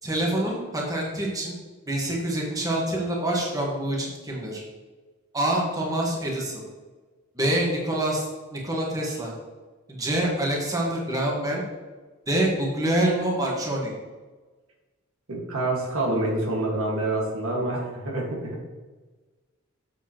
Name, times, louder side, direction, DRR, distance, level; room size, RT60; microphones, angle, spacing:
voice 1, 0.0-1.5 1.9-4.6 5.3-6.6 7.3-8.3 8.5-9.3 9.9-11.6 12.3-13.9, right 1 dB, 20° right, -2 dB, 1.4 m, -26 dB
voice 2, 15.3-18.6, right 2 dB, 85° right, -2 dB, 1.8 m, -27 dB
7.4 x 6.8 x 3.0 m, 1.3 s
head